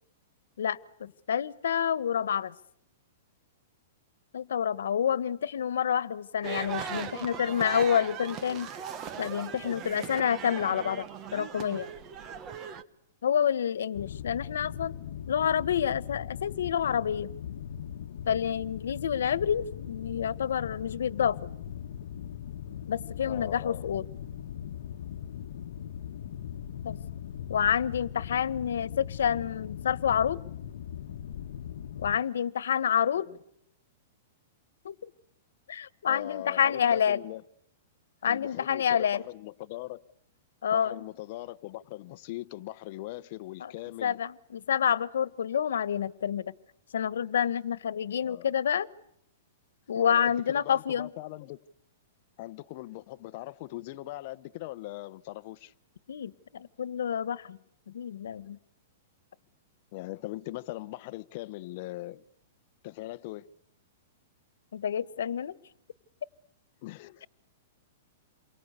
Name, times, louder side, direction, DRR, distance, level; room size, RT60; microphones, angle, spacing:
voice 1, 0.6-2.5 4.3-8.7 9.2-11.0 11.3-11.9 13.2-14.9 15.3-17.3 18.2-21.5 22.9-24.1 26.8-27.0 27.5-30.4 32.0-33.3 34.8-34.9 35.7-37.2 38.2-39.2 40.6-41.0 43.6-43.7 44.0-46.5 46.9-48.9 49.9-51.1 56.1-57.6 57.9-58.6 64.7-65.6, left 8 dB, 90° left, 1.4 m, -28 dB
sound 1, 6.4-12.8, right 8 dB, 25° right, 1.4 m, -38 dB
sound 2, 13.9-32.2, left 9 dB, 65° left, 1.3 m, -40 dB
voice 2, 23.2-23.9 33.3-33.4 36.1-37.4 38.2-40.0 40.7-44.2 48.2-48.5 49.9-51.6 52.4-55.7 59.9-62.2 62.8-63.5 66.8-67.3, left 17 dB, 40° left, 1.0 m, -40 dB
28.5 x 23.5 x 8.3 m
hypercardioid pair, 165°, 0 cm